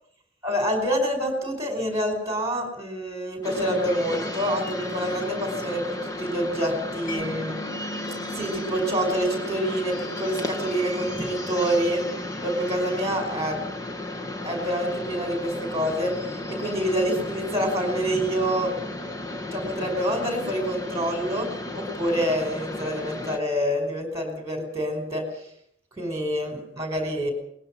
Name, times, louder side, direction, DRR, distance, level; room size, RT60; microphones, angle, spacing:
voice 1, 0.4-7.6 8.3-12.0 12.4-13.6 14.4-16.1 16.5-18.7 19.5-25.3 26.0-27.3, equal, 15° right, 5 dB, 5.2 m, -27 dB
sound 1, 3.4-23.4, left 1 dB, 20° left, 2.1 m, -34 dB
Mallet percussion, 7.1-14.5, right 1 dB, 40° left, 4.8 m, -44 dB
21.0 x 20.0 x 7.5 m, 0.68 s
head